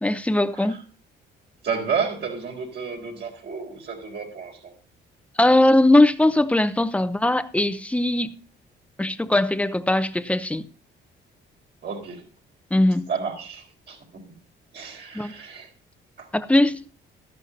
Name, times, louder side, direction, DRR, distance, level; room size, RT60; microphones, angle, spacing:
voice 1, 0.0-0.8 5.4-8.4 9.0-10.7 12.7-13.1 15.1-15.3 16.3-16.8, left 1 dB, 5° left, 0.7 m, -20 dB
voice 2, 1.6-4.7 11.8-12.2 13.1-14.2 14.7-15.7 16.2-16.3, right 6 dB, 60° right, 4.2 m, -31 dB
13.5 x 11.0 x 2.7 m
cardioid pair, 90°, 20 cm